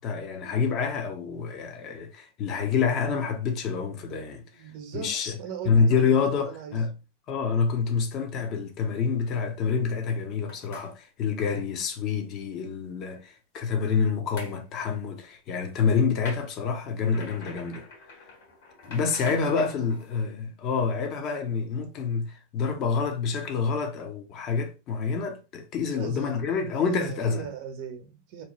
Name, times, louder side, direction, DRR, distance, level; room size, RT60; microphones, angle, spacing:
voice 1, 0.0-4.4 4.9-5.4 5.7-6.9 7.3-17.9 18.9-27.5, left 5 dB, 40° left, 0.7 m, -27 dB
voice 2, 4.3-6.8 19.2-19.5 25.9-28.4, right 7 dB, 55° right, 0.8 m, -39 dB
sound 1, 10.5-10.9 14.4-14.6 16.2-20.2, left 3 dB, 60° left, 1.6 m, -44 dB
2.9 x 2.2 x 2.9 m
hypercardioid pair, 95°, 0 cm